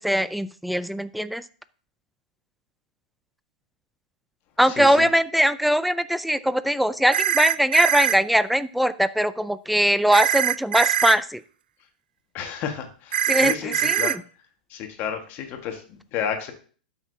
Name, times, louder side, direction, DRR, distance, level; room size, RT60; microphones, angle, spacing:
voice 1, 0.0-1.4 4.6-11.4 13.3-14.2, equal, ahead, 15 dB, 0.4 m, -21 dB
voice 2, 4.8-5.1 12.3-14.2 14.7-16.5, left 8 dB, 40° left, 5 dB, 1.6 m, -31 dB
sound 1, 7.1-8.2 10.1-11.2 13.1-14.1, right 10 dB, 75° right, 0.3 m, -22 dB
12.0 x 5.9 x 2.8 m, 0.43 s
hypercardioid pair, 115°, 5 cm